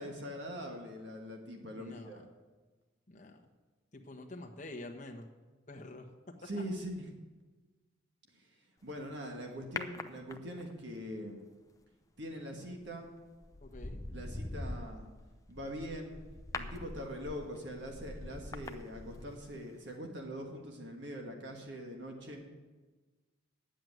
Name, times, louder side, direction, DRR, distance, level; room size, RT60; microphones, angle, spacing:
voice 1, 0.0-2.2 6.4-7.1 8.3-8.5 8.8-11.4 12.2-13.1 14.1-15.1 15.5-16.2 16.5-22.5, equal, 60° right, 2 dB, 1.5 m, -42 dB
voice 2, 1.7-2.2 3.1-3.4 3.9-5.3 5.7-6.5 13.6-14.0, left 2 dB, 35° left, 2 dB, 1.2 m, -47 dB
sound 1, 9.8-10.8 12.7-12.9 13.4-19.6 19.9-20.0, left 2 dB, 15° left, 0.5 m, -43 dB
9.3 x 7.7 x 9.4 m, 1.3 s
head